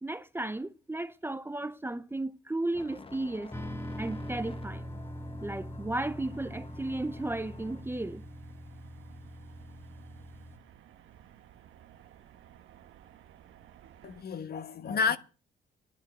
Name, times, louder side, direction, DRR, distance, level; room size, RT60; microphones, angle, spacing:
voice 1, 0.0-3.5 4.0-4.9 5.4-8.2, right 2 dB, 10° right, 0.7 m, -34 dB
sound 1, 2.7-7.8, left 4 dB, 25° left, 1.0 m, -51 dB
sound 2, 3.5-10.6, equal, 10° left, 1.4 m, -42 dB
sound 3, 6.1-14.2, right 10 dB, 80° right, 1.2 m, -56 dB
voice 2, 14.0-15.2, left 5 dB, 50° left, 1.2 m, -30 dB
11.0 x 9.0 x 7.9 m
cardioid pair, 90°, 20 cm